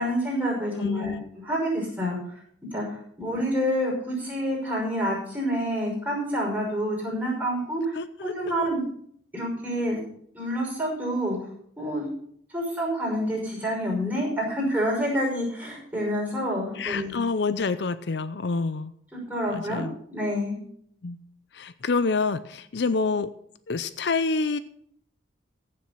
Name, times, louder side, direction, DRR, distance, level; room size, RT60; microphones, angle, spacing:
voice 1, 0.0-1.2 1.4-2.2 2.7-2.8 3.2-7.9 8.2-8.8 9.3-10.0 10.3-11.4 11.8-12.1 12.5-17.2 19.1-19.8 20.1-20.6, equal, 10° right, -3 dB, 5.8 m, -27 dB
voice 2, 0.7-1.2 7.9-8.3 16.7-18.9 19.5-19.9 21.0-21.2 21.5-23.3 23.7-24.6, left 4 dB, 70° left, 13 dB, 0.6 m, -27 dB
14.5 x 7.7 x 5.7 m, 0.66 s
head